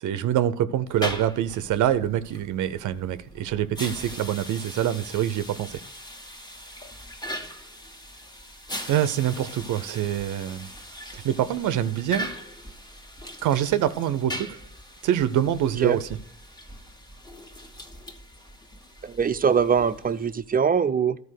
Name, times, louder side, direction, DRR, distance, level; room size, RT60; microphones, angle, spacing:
voice 1, 0.0-5.8 8.9-10.7 11.1-12.3 13.4-14.5 15.0-16.0, right 11 dB, 80° right, 0.7 m, -25 dB
sound 1, 0.8-20.4, equal, 15° left, 1.5 m, -40 dB
voice 2, 19.0-21.2, right 6 dB, 30° right, 0.5 m, -22 dB
12.0 x 4.7 x 6.4 m
cardioid pair, 90°, 30 cm